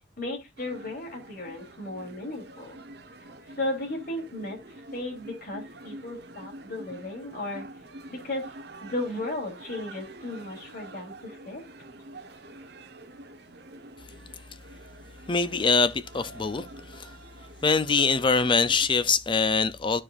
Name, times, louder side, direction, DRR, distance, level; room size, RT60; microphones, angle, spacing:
voice 1, 0.2-2.8 3.5-7.7 8.1-8.5 8.8-11.6, left 2 dB, 50° left, 3.4 m, -35 dB
sound 1, 0.6-18.9, right 1 dB, 65° right, 1.1 m, -47 dB
voice 2, 15.3-17.1 17.6-20.0, left 4 dB, 30° left, 0.5 m, -24 dB
13.5 x 4.9 x 2.5 m
head